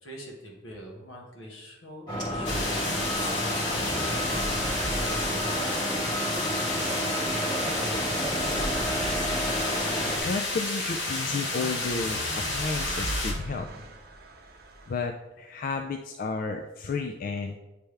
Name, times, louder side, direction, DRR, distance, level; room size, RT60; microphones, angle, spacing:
voice 1, 0.0-6.3, equal, 75° left, 0 dB, 1.5 m, -44 dB
sound 1, 2.1-10.2, equal, 20° left, 1.6 m, -31 dB
sound 2, 2.4-13.3, left 2 dB, 60° left, 1.2 m, -31 dB
sound 3, 2.7-15.1, right 1 dB, 50° right, 0.7 m, -39 dB
voice 2, 9.9-13.7 14.9-17.6, left 4 dB, 45° left, 4 dB, 0.3 m, -32 dB
8.9 x 3.4 x 3.3 m, 1.1 s
head